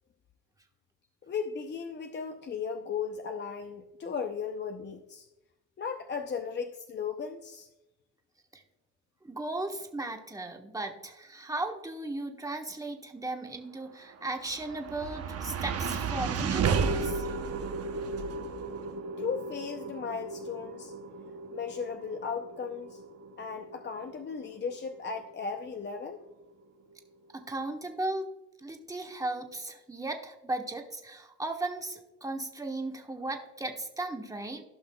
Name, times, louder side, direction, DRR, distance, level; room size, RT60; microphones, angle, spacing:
voice 1, 1.3-5.3 5.8-7.7 19.2-20.9 21.5-23.0 23.4-26.2, left 6 dB, 35° left, 5 dB, 0.6 m, -36 dB
voice 2, 9.2-17.3 27.3-28.2 28.6-34.6, right 2 dB, 10° right, 3 dB, 1.2 m, -36 dB
sound 1, 14.1-26.4, right 5 dB, 50° right, 0.8 m, -34 dB
15.0 x 5.8 x 2.3 m, 0.99 s
cardioid pair, 90°, 30 cm